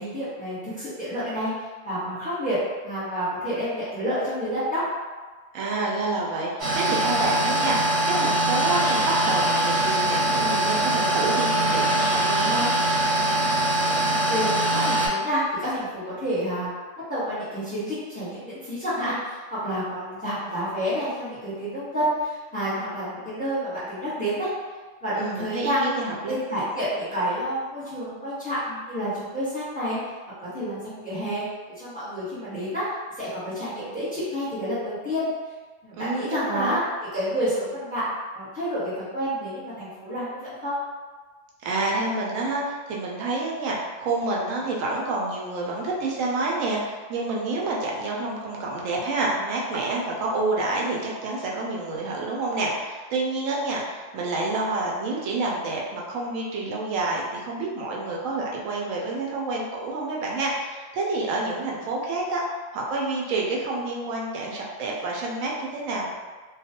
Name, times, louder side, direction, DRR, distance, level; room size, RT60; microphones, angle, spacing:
voice 1, 0.0-1.5 1.8-2.6 2.8-4.8 14.1-16.7 17.1-24.5 25.0-25.8 26.3-30.0 30.4-31.4 31.8-32.8 33.2-35.3 35.8-36.8 37.1-38.0 38.3-40.8, equal, 5° left, -12 dB, 1.0 m, -29 dB
voice 2, 5.5-12.7 25.2-26.3 36.0-36.8 41.6-62.4 62.7-66.1, right 2 dB, 90° right, -2 dB, 1.0 m, -28 dB
sound 1, 6.6-15.1, right 1 dB, 65° right, 1.1 m, -22 dB
2.4 x 2.2 x 2.7 m, 1.4 s
omnidirectional pair, 1.3 m